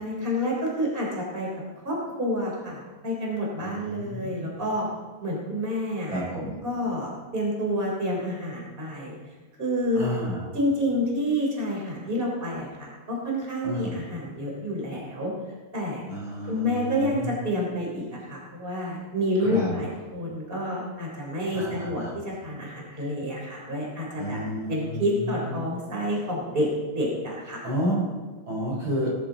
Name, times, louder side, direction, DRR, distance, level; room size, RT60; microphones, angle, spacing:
voice 1, 0.0-1.5 1.8-4.9 5.2-6.2 6.6-9.1 9.6-10.1 10.5-15.3 15.7-16.0 16.4-18.0 18.3-24.4 24.7-26.7 26.9-27.6, equal, 25° right, -2 dB, 3.8 m, -29 dB
voice 2, 3.6-4.5 6.1-6.6 10.0-10.5 13.6-13.9 16.1-17.4 19.4-19.7 21.5-22.1 24.2-25.6 27.6-28.0 28.5-29.1, equal, 65° right, -4 dB, 5.9 m, -31 dB
19.0 x 14.5 x 4.0 m, 1.4 s
omnidirectional pair, 2.4 m